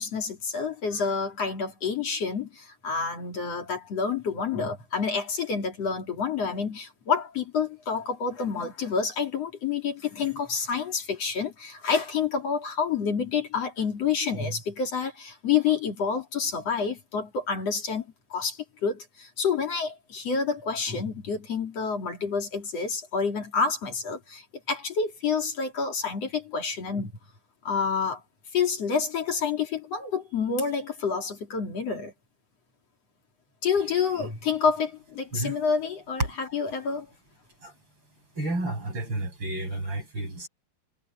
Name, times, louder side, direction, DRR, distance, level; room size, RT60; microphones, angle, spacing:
voice 1, 0.0-27.1 27.6-28.2 28.5-32.1 33.6-37.1, left 5 dB, 40° left, 3.1 m, -28 dB
voice 2, 38.4-40.5, right 2 dB, 20° right, 8.4 m, -31 dB
omnidirectional pair, 5.8 m